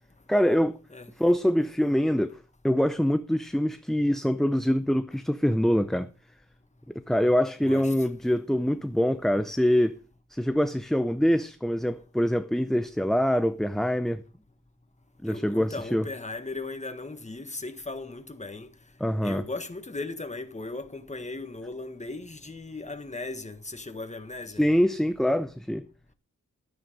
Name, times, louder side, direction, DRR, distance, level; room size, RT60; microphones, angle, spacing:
voice 1, 0.3-0.8 1.2-2.4 2.6-6.1 7.1-10.0 10.3-14.2 15.2-16.0 19.0-19.4 24.6-25.8, equal, ahead, 0.6 m, -24 dB
voice 2, 7.6-7.9 15.3-18.7 19.2-24.6, left 3 dB, 20° left, 1.5 m, -37 dB
13.0 x 9.3 x 5.4 m
wide cardioid pair, 95°, 32 cm